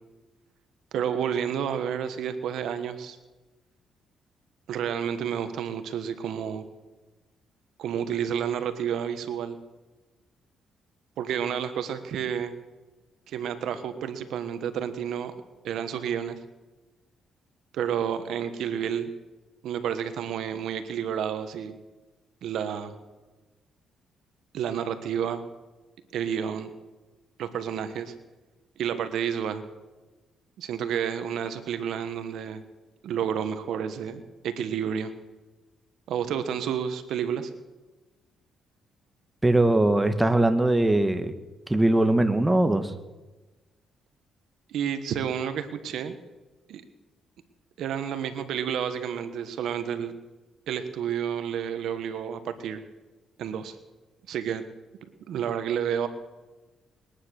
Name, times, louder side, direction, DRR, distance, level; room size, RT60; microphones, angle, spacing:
voice 1, 0.9-3.2 4.7-6.6 7.8-9.6 11.2-12.5 13.3-15.3 15.6-16.4 17.7-19.1 19.6-21.7 22.4-23.0 24.5-25.4 26.1-26.7 27.4-28.1 28.8-29.6 30.6-32.6 33.0-35.1 36.1-37.5 44.7-46.1 46.7-46.8 47.8-50.1 50.7-52.8 53.4-53.8 54.3-54.6 55.3-56.1, right 8 dB, 75° right, 10 dB, 1.3 m, -30 dB
voice 2, 39.4-41.3 41.7-42.9, right 1 dB, 10° right, 8 dB, 1.4 m, -21 dB
21.5 x 10.0 x 6.6 m, 1.2 s
cardioid pair, 90°, 0 cm